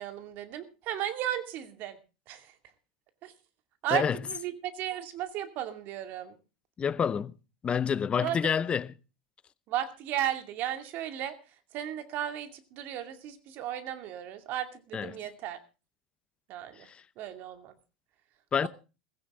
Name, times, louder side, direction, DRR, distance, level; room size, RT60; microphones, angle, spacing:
voice 1, 0.0-2.0 2.3-2.5 3.2-3.3 3.8-6.4 8.2-8.4 9.7-11.3 11.7-15.6 16.5-16.9 17.2-17.7 18.6-18.7, right 11 dB, 50° right, 2.4 m, -35 dB
voice 2, 6.8-7.3 7.6-8.9 14.9-15.2 16.9-17.0 18.5-18.7, left 7 dB, 25° left, 0.8 m, -28 dB
16.0 x 16.0 x 3.7 m
hypercardioid pair, 95°, 4 cm